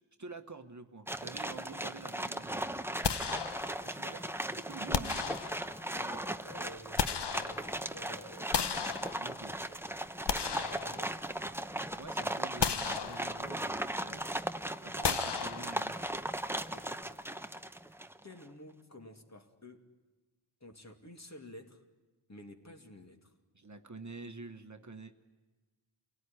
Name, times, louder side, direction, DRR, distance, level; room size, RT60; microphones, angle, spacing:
voice 1, 0.2-3.2 3.8-4.3 4.6-5.2 9.1-9.6 12.0-14.2 14.8-16.1 23.5-25.1, right 3 dB, 35° right, 1.3 m, -47 dB
sound 1, 1.1-18.2, right 1 dB, 5° right, 0.8 m, -38 dB
sound 2, 3.0-4.1 4.9-6.0 6.6-8.0 8.5-9.6 10.1-11.5 11.9-12.1 12.6-13.7 15.0-16.2, left 7 dB, 55° left, 0.9 m, -35 dB
voice 2, 5.9-11.2 14.0-14.3 16.7-17.5 17.8-19.9 20.6-21.8 22.3-23.3, left 1 dB, 35° left, 2.6 m, -52 dB
28.5 x 18.0 x 9.8 m
wide cardioid pair, 90°, 49 cm